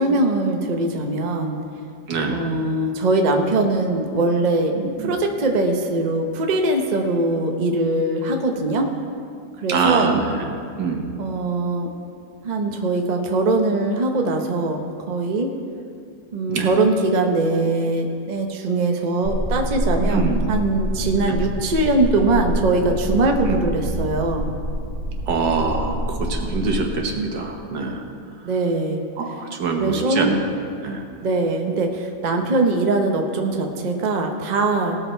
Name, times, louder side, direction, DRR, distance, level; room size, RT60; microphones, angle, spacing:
voice 1, 0.0-1.6 2.3-8.9 9.6-10.2 11.2-11.9 12.4-15.5 16.3-24.5 28.4-29.0 29.3-29.5 29.8-30.4 31.2-35.0, right 2 dB, 35° right, 3 dB, 0.8 m, -21 dB
voice 2, 2.1-2.4 4.8-5.1 9.7-10.3 10.8-11.0 16.5-16.7 20.0-20.5 23.5-23.6 25.3-28.0 29.2-30.4 30.8-31.0, right 4 dB, 85° right, 2 dB, 1.8 m, -24 dB
sound 1, 19.2-26.8, equal, ahead, 1.8 m, -27 dB
18.5 x 6.5 x 4.5 m, 2.4 s
omnidirectional pair, 1.8 m